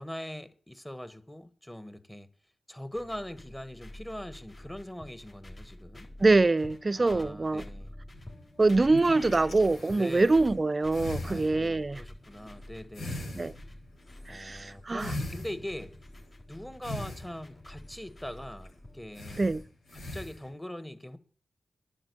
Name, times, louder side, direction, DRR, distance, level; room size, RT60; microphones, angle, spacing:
voice 1, 0.0-2.3 2.7-6.1 7.0-7.9 9.9-10.4 11.2-13.4 14.3-16.0 16.5-19.5 19.9-21.2, left 1 dB, 10° left, 1.4 m, -42 dB
sound 1, 2.9-19.7, left 1 dB, 35° left, 3.9 m, -48 dB
voice 2, 6.2-7.7 8.6-12.0 13.4-13.5 14.3-15.1 19.4-19.6, right 3 dB, 40° right, 0.6 m, -24 dB
sound 2, 8.1-10.6 10.9-12.0 12.3-12.7 12.9-16.3 16.8-18.4 18.6-18.7 19.1-20.5, left 1 dB, 85° left, 6.0 m, -41 dB
10.0 x 7.2 x 8.4 m
cardioid pair, 55°, 0 cm